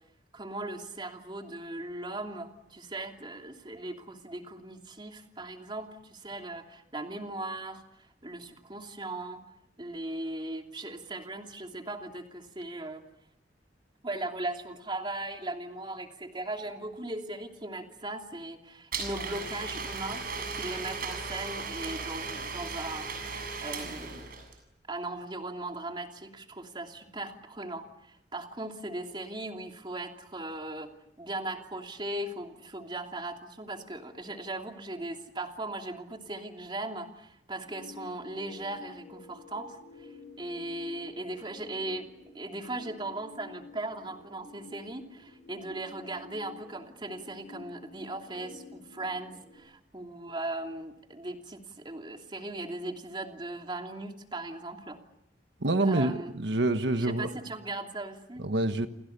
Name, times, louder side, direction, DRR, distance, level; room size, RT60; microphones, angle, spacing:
voice 1, 0.3-7.8 8.2-9.5 9.8-13.0 14.0-24.3 24.9-30.9 31.2-40.1 40.4-42.1 42.3-55.0 55.8-56.3 57.0-58.5, right 2 dB, 25° right, 3 dB, 2.9 m, -38 dB
Domestic sounds home sounds, 18.9-24.6, right 4 dB, 55° right, 7.3 m, -37 dB
sound 1, 37.7-49.5, left 3 dB, 15° left, 7.8 m, -50 dB
voice 2, 55.6-57.3 58.4-58.9, right 2 dB, 85° right, 8 dB, 1.4 m, -27 dB
29.5 x 27.5 x 6.9 m, 0.77 s
head